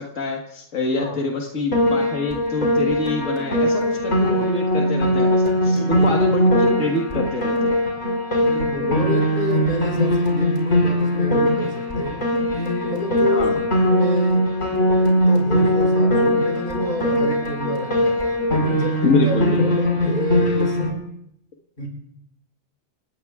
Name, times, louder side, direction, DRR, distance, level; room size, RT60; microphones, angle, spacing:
voice 1, 0.0-7.7 13.3-13.6 19.0-19.6, left 3 dB, 85° left, 0 dB, 2.0 m, -25 dB
Piano, 1.7-20.9, equal, 65° left, 4.7 m, -20 dB
voice 2, 5.6-6.3 8.4-14.5 14.9-20.8 21.8-21.9, left 1 dB, 45° left, 0 dB, 5.2 m, -29 dB
29.0 x 17.5 x 2.4 m, 0.74 s
omnidirectional pair, 1.3 m